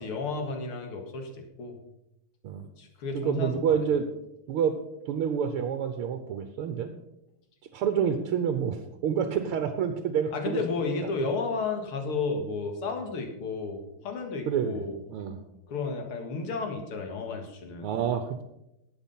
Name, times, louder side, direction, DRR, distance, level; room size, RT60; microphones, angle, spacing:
voice 1, 0.0-1.8 2.8-3.8 10.3-15.0 15.7-17.9, left 4 dB, 80° left, 4 dB, 2.6 m, -32 dB
voice 2, 3.1-4.0 4.5-4.8 5.1-6.9 7.7-10.6 14.5-14.8 15.1-15.4 17.8-18.4, right 8 dB, 85° right, 8 dB, 1.8 m, -28 dB
12.0 x 8.6 x 5.5 m, 0.86 s
omnidirectional pair, 2.4 m